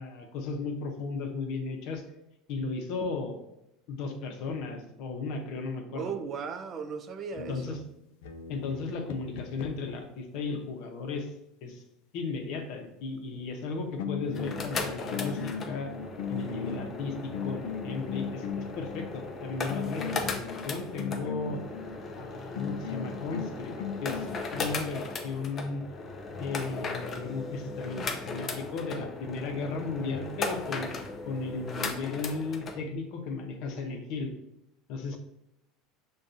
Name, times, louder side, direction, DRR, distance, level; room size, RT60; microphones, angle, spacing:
voice 1, 0.0-2.0 2.5-3.4 3.9-6.1 7.5-7.8 8.5-11.3 11.6-11.8 12.1-15.9 16.3-21.6 22.1-23.7 24.0-25.8 26.4-31.0 31.3-34.3 34.9-35.2, left 4 dB, 60° left, 4 dB, 0.8 m, -35 dB
voice 2, 5.9-7.8, right 6 dB, 35° right, 8 dB, 0.4 m, -36 dB
sound 1, 7.3-10.0 13.6-13.7 14.0-19.1 19.7-22.0 22.6-24.4, left 7 dB, 85° left, 0.4 m, -38 dB
sound 2, 14.2-32.8, left 3 dB, 30° left, 0.5 m, -37 dB
6.4 x 2.3 x 2.6 m, 0.85 s
supercardioid pair, 135°, 0 cm